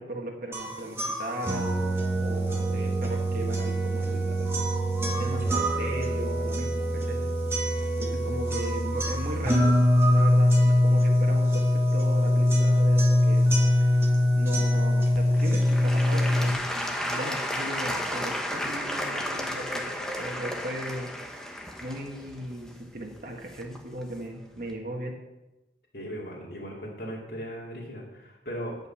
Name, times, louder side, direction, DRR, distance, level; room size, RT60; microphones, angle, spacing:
voice 1, 0.0-1.8 2.2-4.7 5.0-7.2 8.0-9.6 10.1-13.4 13.8-13.9 14.3-19.8 20.2-21.1 21.8-25.1, right 1 dB, 50° right, 0 dB, 1.5 m, -37 dB
sound 1, 0.5-16.5, equal, 15° right, 1.5 m, -23 dB
Applause / Crowd, 15.1-24.0 24.6-24.7, equal, 5° left, 1.0 m, -33 dB
voice 2, 25.9-28.8, equal, 60° left, -4 dB, 2.5 m, -38 dB
11.0 x 5.4 x 7.1 m, 1.0 s
head